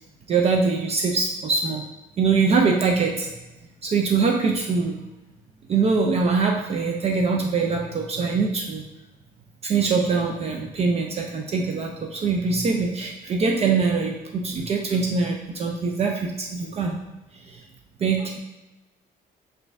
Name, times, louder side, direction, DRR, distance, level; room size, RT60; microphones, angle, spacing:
voice 1, 0.3-1.8 2.2-3.3 3.8-5.0 5.7-8.8 9.6-17.0 17.5-17.6 18.0-18.4, right 4 dB, 40° right, 1 dB, 0.4 m, -23 dB
4.3 x 2.6 x 3.3 m, 1.0 s
cardioid pair, 110°, 17 cm